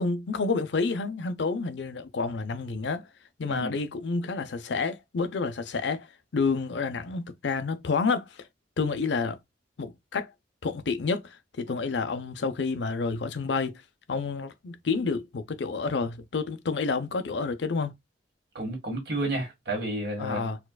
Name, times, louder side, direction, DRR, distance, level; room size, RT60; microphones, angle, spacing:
voice 1, 0.0-3.1 3.4-6.1 6.3-8.4 8.8-9.4 9.8-10.3 10.6-13.8 14.1-18.0 20.2-20.6, left 4 dB, 70° left, 0.5 m, -29 dB
voice 2, 18.5-20.5, right 1 dB, 60° right, 1.7 m, -31 dB
4.4 x 2.3 x 2.2 m
head